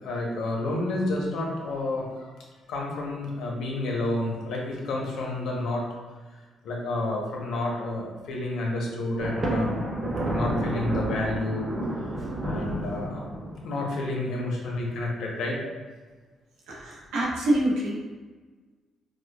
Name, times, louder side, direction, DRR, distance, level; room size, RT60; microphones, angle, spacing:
voice 1, 0.0-2.3 2.7-5.8 6.6-9.8 10.3-11.7 12.4-13.3 13.6-15.6, left 2 dB, 75° left, -2 dB, 0.8 m, -30 dB
Thunder, 9.2-13.8, right 1 dB, 40° right, 1.0 m, -30 dB
voice 2, 16.7-18.1, right 1 dB, 90° right, -3 dB, 0.9 m, -26 dB
4.8 x 2.2 x 2.3 m, 1.3 s
cardioid pair, 90°, 0 cm